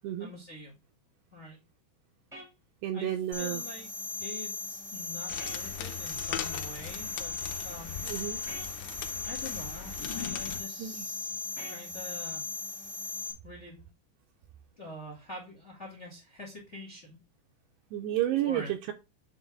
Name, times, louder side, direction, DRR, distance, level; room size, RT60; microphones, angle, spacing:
voice 1, 0.2-0.7 1.3-1.6 2.9-3.9 4.2-7.3 7.6-8.1 8.9-12.4 13.4-13.9 14.8-17.2 18.4-18.7, left 1 dB, 50° left, -1 dB, 0.8 m, -45 dB
sound 1, 2.3-2.5 5.4-5.6 8.5-8.7 11.6-11.8, equal, ahead, 0.8 m, -45 dB
voice 2, 2.8-3.6 8.0-8.4 10.8-11.1 17.9-18.9, right 12 dB, 80° right, 4 dB, 2.5 m, -31 dB
sound 2, 3.3-13.3, left 4 dB, 25° left, 1.1 m, -38 dB
sound 3, 5.3-10.6, left 10 dB, 80° left, 2.6 m, -40 dB
9.5 x 3.9 x 3.5 m, 0.26 s
omnidirectional pair, 5.3 m